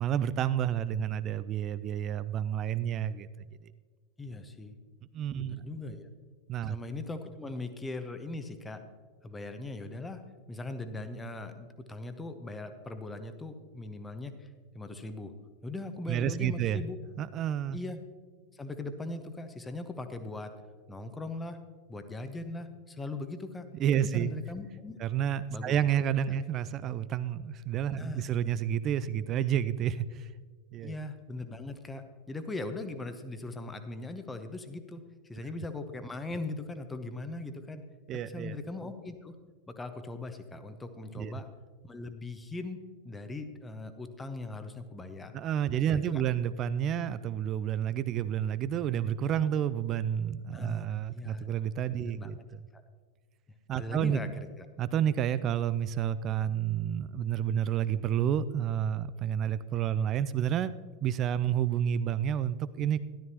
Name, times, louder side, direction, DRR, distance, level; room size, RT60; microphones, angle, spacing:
voice 1, 0.0-3.3 5.1-5.6 6.5-6.8 16.1-16.8 17.2-17.8 23.8-24.3 25.0-30.3 30.7-31.0 38.1-38.6 41.2-41.3 45.3-52.4 53.7-54.2 54.8-60.7 61.0-63.0, right 9 dB, 30° right, 15 dB, 0.4 m, -30 dB
voice 2, 4.2-4.7 5.4-6.1 6.6-8.8 9.2-14.5 14.7-15.3 15.6-17.0 17.7-18.0 18.5-20.5 20.9-21.6 21.9-23.7 23.9-25.0 25.5-25.7 28.0-28.3 30.8-37.8 38.1-39.4 39.7-41.5 41.8-45.4 45.7-46.2 50.5-51.4 51.9-52.3 52.7-52.8 53.7-54.7, left 2 dB, 10° left, 9 dB, 0.9 m, -40 dB
12.5 x 12.0 x 2.9 m, 1.5 s
figure-of-eight pair, 90°, 0 cm